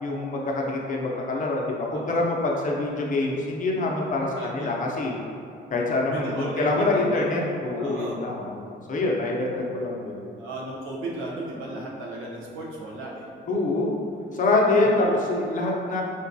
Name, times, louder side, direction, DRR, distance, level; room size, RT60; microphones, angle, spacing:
voice 1, 0.0-5.2 5.7-8.6 8.9-10.2 13.5-14.0 14.3-16.0, left 2 dB, 40° left, -2 dB, 0.5 m, -25 dB
voice 2, 1.9-2.2 4.4-4.7 6.1-7.3 7.8-8.2 10.4-13.2 15.0-15.2, right 2 dB, 85° right, -4 dB, 0.7 m, -35 dB
3.8 x 2.2 x 2.6 m, 2.4 s
cardioid pair, 90°, 20 cm